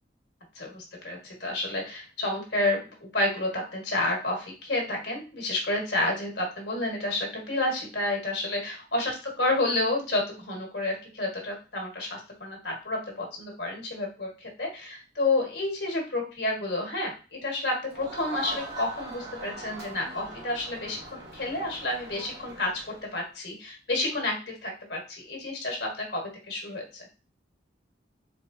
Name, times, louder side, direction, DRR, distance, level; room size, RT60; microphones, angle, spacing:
voice 1, 0.5-21.0 21.3-22.7 23.1-26.2 26.5-27.1, left 2 dB, 65° left, 0 dB, 1.6 m, -30 dB
Crowd, 17.9-23.2, right 3 dB, 65° right, 1.5 m, -41 dB
4.6 x 3.3 x 2.6 m, 0.33 s
head